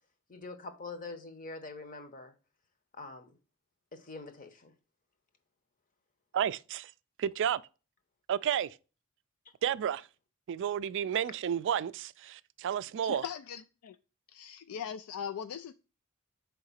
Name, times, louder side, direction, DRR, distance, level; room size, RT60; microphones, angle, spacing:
voice 1, 0.3-2.3 2.9-3.3 3.9-4.7, left 3 dB, 40° left, 0.9 m, -44 dB
voice 2, 6.3-6.9 7.2-7.6 8.3-8.8 9.6-10.1 10.5-13.2, right 9 dB, 55° right, 0.3 m, -31 dB
voice 3, 13.0-14.0 14.3-15.7, left 8 dB, 75° left, 0.3 m, -40 dB
4.8 x 3.6 x 5.6 m
head